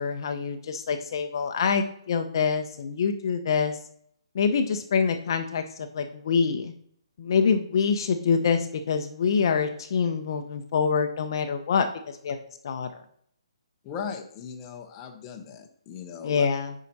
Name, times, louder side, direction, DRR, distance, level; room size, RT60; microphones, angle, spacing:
voice 1, 0.0-3.8 4.3-6.7 7.2-12.4 12.6-13.0 16.2-16.7, left 6 dB, 50° left, 7 dB, 0.8 m, -25 dB
voice 2, 13.8-16.5, left 6 dB, 20° left, 3 dB, 1.0 m, -38 dB
8.6 x 5.0 x 4.1 m, 0.65 s
hypercardioid pair, 155°, 3 cm